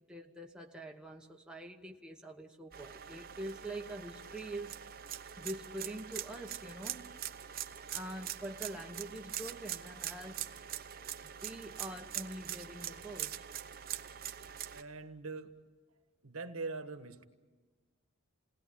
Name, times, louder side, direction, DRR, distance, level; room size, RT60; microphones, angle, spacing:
voice 1, 0.1-4.8 5.4-7.2 7.9-10.5 11.2-13.4, right 1 dB, 5° right, 1.2 m, -45 dB
sound 1, 2.7-14.8, right 10 dB, 45° right, 0.9 m, -43 dB
voice 2, 14.7-15.5 16.2-17.2, right 3 dB, 70° right, 1.5 m, -42 dB
28.5 x 19.0 x 8.6 m
head